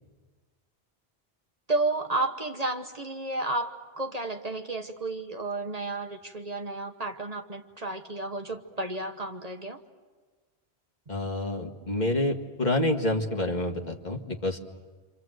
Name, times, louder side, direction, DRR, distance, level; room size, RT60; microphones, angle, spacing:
voice 1, 1.7-9.8, right 2 dB, 40° right, 5 dB, 1.2 m, -32 dB
voice 2, 11.1-14.6, left 1 dB, 45° left, 1 dB, 2.0 m, -28 dB
28.5 x 26.0 x 7.9 m, 1.4 s
omnidirectional pair, 1.1 m